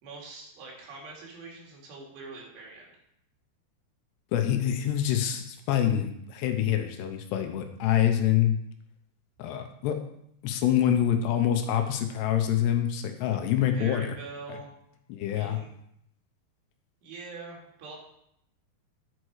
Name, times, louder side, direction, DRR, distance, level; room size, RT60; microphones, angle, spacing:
voice 1, 0.0-2.9 13.7-14.7 15.3-15.7 17.0-18.0, right 3 dB, 80° right, -2 dB, 4.3 m, -43 dB
voice 2, 4.3-8.6 9.4-10.0 10.4-14.1 15.1-15.6, left 10 dB, 85° left, 6 dB, 2.9 m, -26 dB
11.0 x 6.4 x 4.7 m, 0.76 s
omnidirectional pair, 4.9 m